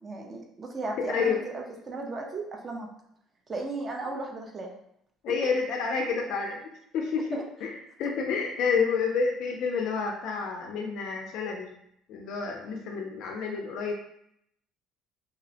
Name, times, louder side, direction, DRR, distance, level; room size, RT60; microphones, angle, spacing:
voice 1, 0.0-2.9 3.5-4.7 7.3-7.4, right 3 dB, 25° right, 1 dB, 0.4 m, -35 dB
voice 2, 1.0-1.4 5.2-7.7 8.0-11.7 12.1-13.9, left 5 dB, 55° left, 1 dB, 0.3 m, -29 dB
2.7 x 2.0 x 2.6 m, 0.74 s
cardioid pair, 170°, 0 cm